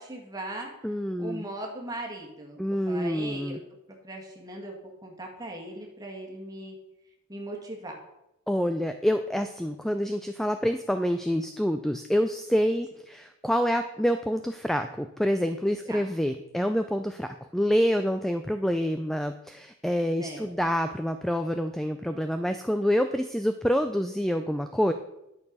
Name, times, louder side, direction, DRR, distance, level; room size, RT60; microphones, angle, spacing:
voice 1, 0.0-0.7 1.2-3.6 4.0-6.8 7.3-8.0 15.9-16.0 20.2-20.5, right 1 dB, 15° right, -1 dB, 1.9 m, -39 dB
voice 2, 0.8-1.5 2.6-3.6 8.5-24.9, equal, ahead, 8 dB, 0.3 m, -27 dB
10.5 x 6.7 x 5.4 m, 0.87 s
head